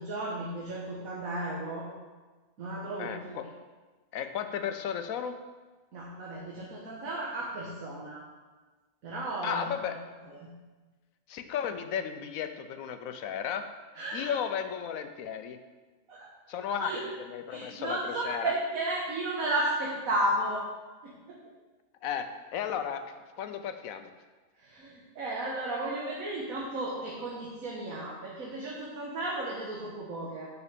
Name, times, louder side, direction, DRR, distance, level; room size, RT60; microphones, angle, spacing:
voice 1, 0.0-1.8 2.6-3.4 5.9-8.3 9.0-9.7 10.3-10.5 13.9-14.4 16.1-16.3 16.8-17.0 17.5-20.6 21.0-21.4 24.6-30.5, right 1 dB, 85° right, -4 dB, 1.7 m, -34 dB
voice 2, 3.0-3.5 4.1-5.4 9.4-10.0 11.3-13.6 14.1-15.6 16.5-17.0 17.3-18.5 22.0-22.3 22.5-23.0 23.4-24.1, left 8 dB, 85° left, 8 dB, 1.1 m, -34 dB
7.0 x 5.5 x 6.7 m, 1.3 s
omnidirectional pair, 1.4 m